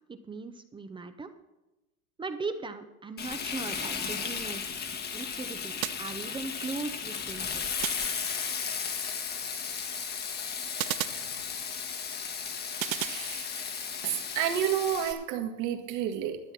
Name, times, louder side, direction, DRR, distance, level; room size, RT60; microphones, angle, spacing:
voice 1, 0.1-1.3 2.2-4.6 5.1-7.7, right 4 dB, 10° right, 8 dB, 0.7 m, -38 dB
Frying (food), 3.2-15.1, left 6 dB, 25° left, 1.2 m, -35 dB
sound 1, 5.8-6.7 7.8-8.7 10.8-11.9 12.8-13.9, right 15 dB, 85° right, 0.6 m, -37 dB
voice 2, 14.0-16.4, right 10 dB, 60° right, 6 dB, 1.9 m, -29 dB
12.5 x 8.0 x 5.8 m, 1.0 s
supercardioid pair, 120°, 40 cm